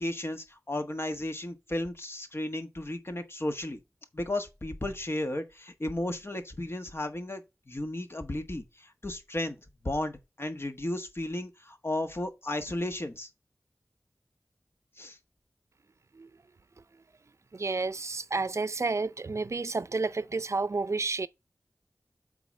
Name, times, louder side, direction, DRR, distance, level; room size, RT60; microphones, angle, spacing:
voice 1, 0.0-3.8 4.1-13.3 15.0-15.2, left 1 dB, 50° left, 1.5 m, -34 dB
voice 2, 17.5-21.3, right 3 dB, 65° right, 0.5 m, -30 dB
7.9 x 4.0 x 5.2 m
wide cardioid pair, 45°, 5 cm